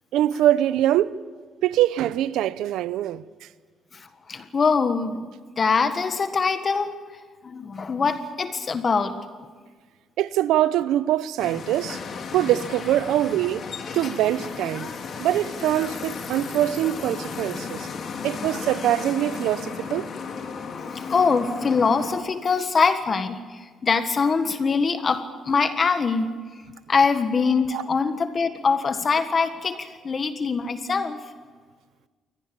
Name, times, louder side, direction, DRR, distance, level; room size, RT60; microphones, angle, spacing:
voice 1, 0.1-1.2 1.6-3.2 10.2-12.0 12.3-13.6 13.9-14.9 15.2-17.9 18.2-20.1 27.7-27.8, right 13 dB, 90° right, 0.8 m, -23 dB
voice 2, 3.9-5.3 5.6-6.9 7.4-9.2 18.2-18.5 20.9-26.3 26.9-31.2, left 5 dB, 40° left, 1.6 m, -23 dB
sound 1, 11.4-22.2, left 5 dB, 60° left, 3.1 m, -34 dB
23.0 x 18.0 x 8.8 m
cardioid pair, 90°, 0 cm